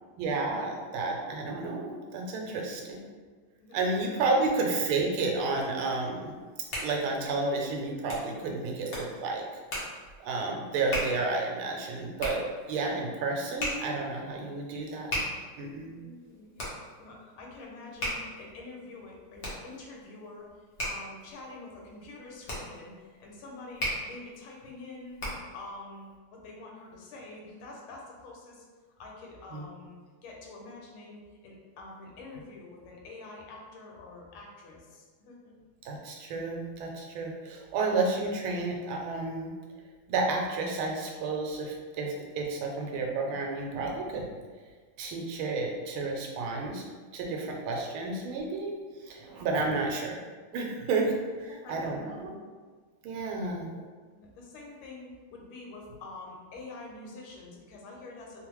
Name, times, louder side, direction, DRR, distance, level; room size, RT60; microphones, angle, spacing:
voice 1, 0.2-3.0 3.7-6.4 6.8-9.4 10.2-15.1 15.6-16.0 29.5-29.7 35.8-39.5 40.1-44.3 45.0-46.8 47.1-48.7 49.0-50.2 50.5-52.3 53.0-53.7, right 3 dB, 80° right, 0 dB, 1.4 m, -31 dB
voice 2, 2.4-2.7 3.6-3.8 4.2-4.4 15.8-25.2 25.5-28.7 29.0-35.5 51.5-52.2 53.1-53.4 54.1-58.5, left 2 dB, 85° left, -1 dB, 1.5 m, -46 dB
Hands, 6.3-25.6, equal, 60° left, 0.7 m, -38 dB
3.6 x 2.0 x 3.0 m, 1.5 s
omnidirectional pair, 2.3 m